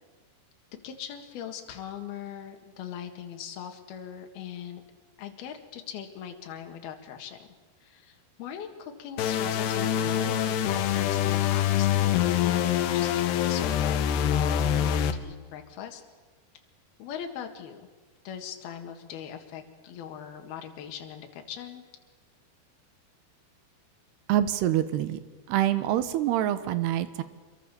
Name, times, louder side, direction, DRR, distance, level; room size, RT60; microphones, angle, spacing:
voice 1, 0.8-4.8 5.2-7.5 7.8-16.0 17.0-17.9 18.3-21.8, left 9 dB, 70° left, 4 dB, 3.7 m, -40 dB
sound 1, 9.2-15.1, left 10 dB, 90° left, 3.3 m, -25 dB
voice 2, 24.3-25.2 25.5-27.2, right 12 dB, 85° right, 12 dB, 3.2 m, -26 dB
26.5 x 22.5 x 7.0 m, 1.3 s
omnidirectional pair, 4.7 m